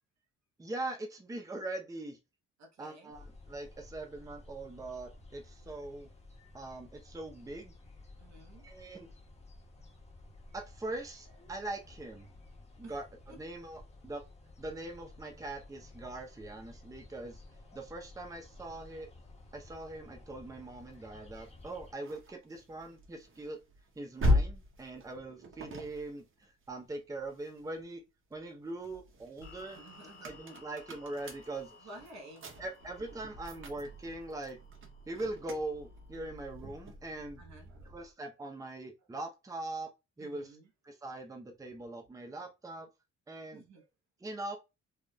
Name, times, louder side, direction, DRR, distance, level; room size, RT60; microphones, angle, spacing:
voice 1, 0.6-2.2 2.8-6.1 6.5-7.7 8.6-9.1 10.5-12.3 12.8-14.2 14.6-17.4 17.7-19.1 19.5-23.6 24.0-28.0 28.3-29.8 30.2-31.8 32.6-34.6 35.1-37.4 37.8-39.9 40.2-40.6 40.8-42.9 43.3-43.6 44.2-44.6, right 2 dB, 10° right, 0.7 m, -42 dB
voice 2, 2.6-3.1 8.2-8.7 12.8-13.0 29.7-30.4 31.8-32.5 37.4-37.9 40.2-40.7 43.5-43.8, right 2 dB, 65° right, 1.2 m, -53 dB
sound 1, 3.1-21.9, left 2 dB, 20° left, 1.3 m, -54 dB
sound 2, 21.3-27.9 28.3-38.1, left 1 dB, 45° right, 0.9 m, -38 dB
sound 3, 29.4-36.6, left 4 dB, 45° left, 1.5 m, -59 dB
3.4 x 2.5 x 2.2 m
cardioid pair, 90°, 30 cm